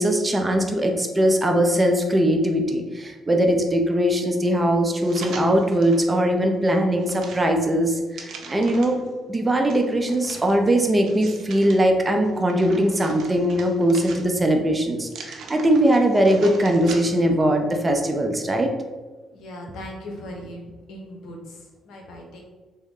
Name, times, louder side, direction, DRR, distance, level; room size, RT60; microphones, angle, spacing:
voice 1, 0.0-9.0 9.3-18.7, right 1 dB, 20° right, 3 dB, 0.5 m, -20 dB
sound 1, 4.9-6.1 6.5-9.1 9.7-11.8 12.2-14.6 15.0-17.3 17.7-17.8, right 4 dB, 70° right, 0.5 m, -41 dB
voice 2, 19.3-20.6 20.9-22.5, left 1 dB, 80° left, 0 dB, 0.8 m, -39 dB
3.6 x 2.1 x 3.6 m, 1.3 s
cardioid pair, 90°, 0 cm